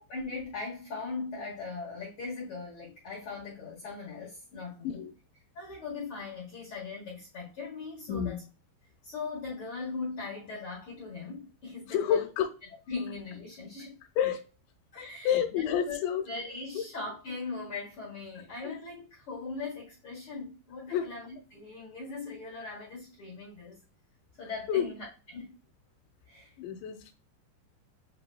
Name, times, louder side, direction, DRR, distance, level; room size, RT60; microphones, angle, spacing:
voice 1, 0.1-5.0 5.5-8.4 9.0-12.2 12.9-14.0 14.9-16.0 16.3-23.8 24.4-25.5 26.3-26.5, left 4 dB, 55° left, -6 dB, 1.5 m, -39 dB
voice 2, 11.9-12.5 14.2-14.4 15.2-16.3 16.8-16.9 18.6-18.7 20.9-21.1 24.7-24.9 26.6-27.1, left 9 dB, 90° left, 5 dB, 2.9 m, -29 dB
8.2 x 2.9 x 2.2 m, 0.33 s
omnidirectional pair, 5.1 m